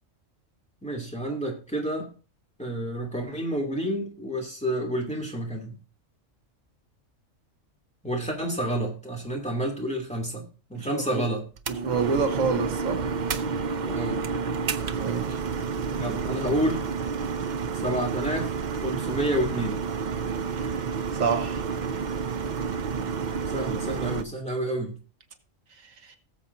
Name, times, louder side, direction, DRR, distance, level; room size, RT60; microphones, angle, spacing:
voice 1, 0.8-2.1 2.6-5.8 8.0-11.4 13.8-14.2 16.0-16.8 17.7-18.5 18.8-19.8 23.5-25.0, right 1 dB, 5° left, 2.8 m, -29 dB
voice 2, 10.7-11.3 11.7-13.1 14.9-15.4 20.6-20.7 21.1-21.8 26.1-26.2, right 5 dB, 90° right, 1.6 m, -28 dB
sound 1, 11.6-24.2, right 5 dB, 50° right, 0.6 m, -30 dB
19.0 x 7.3 x 2.7 m
omnidirectional pair, 1.3 m